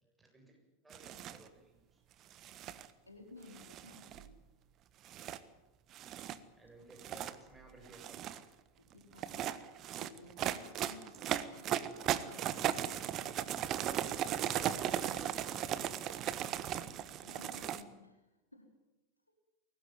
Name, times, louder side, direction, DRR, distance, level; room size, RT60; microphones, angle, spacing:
voice 1, 0.0-0.6 0.8-2.0 6.5-8.2, right 2 dB, 10° right, 2 dB, 7.8 m, -58 dB
sound 1, 0.9-1.4 2.3-2.9 3.6-4.3 5.1-5.4 5.9-6.4 6.9-7.4 7.9-8.4 9.1-17.8, right 11 dB, 40° right, 1.4 m, -37 dB
voice 2, 3.1-4.4 7.2-7.3 8.8-9.5 10.0-13.3 17.2-18.2 18.5-18.7, left 2 dB, 85° left, 4 dB, 4.0 m, -56 dB
22.5 x 19.0 x 9.3 m, 1.0 s
figure-of-eight pair, 85°, 0 cm